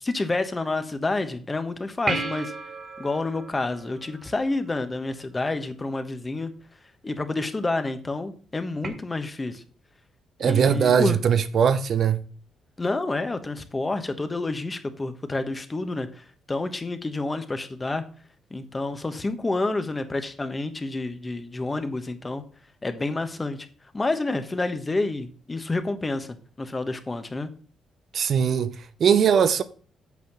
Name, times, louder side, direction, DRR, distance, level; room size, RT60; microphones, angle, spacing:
voice 1, 0.0-2.5 3.0-6.5 7.0-9.6 10.4-11.2 12.8-18.0 18.5-22.4 22.8-23.6 23.9-27.5, left 2 dB, 20° left, 1.2 m, -29 dB
sound 1, 2.1-4.8 8.8-8.9, right 3 dB, 40° right, 2.1 m, -33 dB
voice 2, 10.4-12.2 28.1-29.6, right 7 dB, 60° right, 0.7 m, -20 dB
8.3 x 4.4 x 7.2 m
cardioid pair, 90°, 0 cm